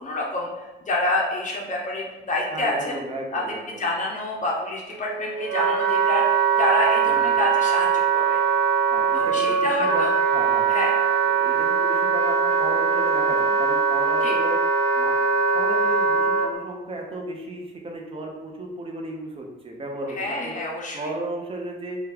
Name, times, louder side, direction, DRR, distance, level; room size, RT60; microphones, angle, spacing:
voice 1, 0.0-3.0 3.3-8.4 9.1-10.1 10.7-10.9 14.2-14.3 20.2-21.1, left 2 dB, 40° left, -2 dB, 0.6 m, -28 dB
voice 2, 2.5-3.8 7.1-7.4 8.9-10.8 11.4-14.6 15.0-15.1 15.5-20.2 20.4-20.5 20.9-22.0, right 2 dB, 30° right, 0 dB, 0.7 m, -34 dB
Wind instrument woodwind instrument, 4.9-16.5, right 5 dB, 65° right, 0.4 m, -21 dB
3.1 x 2.3 x 3.4 m, 1.1 s
cardioid pair, 90°, 20 cm